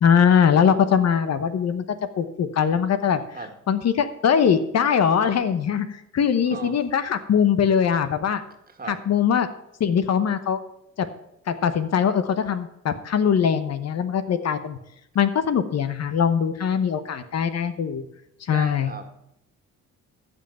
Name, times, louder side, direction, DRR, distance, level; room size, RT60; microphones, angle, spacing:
voice 1, 0.0-1.8 2.2-3.2 3.7-8.4 8.9-9.5 9.8-10.6 11.0-11.1 11.5-14.8 15.1-18.0 18.5-18.9, left 7 dB, 60° left, 11 dB, 1.0 m, -21 dB
voice 2, 8.7-9.0 18.5-19.2, right 4 dB, 30° right, 5 dB, 1.9 m, -36 dB
14.5 x 5.6 x 5.6 m, 0.80 s
cardioid pair, 90°, 30 cm